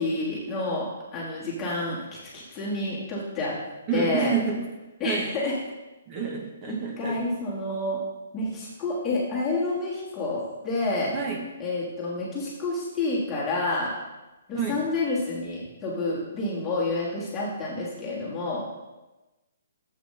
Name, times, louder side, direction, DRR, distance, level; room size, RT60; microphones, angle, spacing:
voice 1, 0.0-2.0 2.3-3.6 3.9-4.3 5.0-5.6 6.7-8.0 8.3-11.2 11.6-13.9 14.5-18.7, left 2 dB, 10° left, -7 dB, 1.7 m, -29 dB
voice 2, 3.9-4.6 5.0-5.3 6.1-7.2 11.1-11.4 14.5-14.8, right 6 dB, 20° right, 2 dB, 1.0 m, -29 dB
12.0 x 7.9 x 3.3 m, 1.1 s
hypercardioid pair, 180°, 0 cm